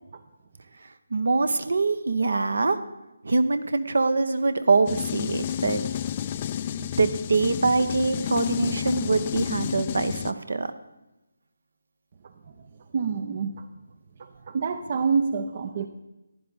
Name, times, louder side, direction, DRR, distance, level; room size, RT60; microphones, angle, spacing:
voice 1, 1.1-2.8 3.2-5.8 6.8-10.7, right 3 dB, 65° right, 12 dB, 0.9 m, -24 dB
sound 1, 4.9-10.3, left 10 dB, 30° left, 0.4 m, -30 dB
voice 2, 12.9-13.7 14.2-15.9, right 5 dB, 40° right, 10 dB, 0.6 m, -27 dB
15.0 x 10.5 x 4.0 m, 0.98 s
figure-of-eight pair, 155°, 0 cm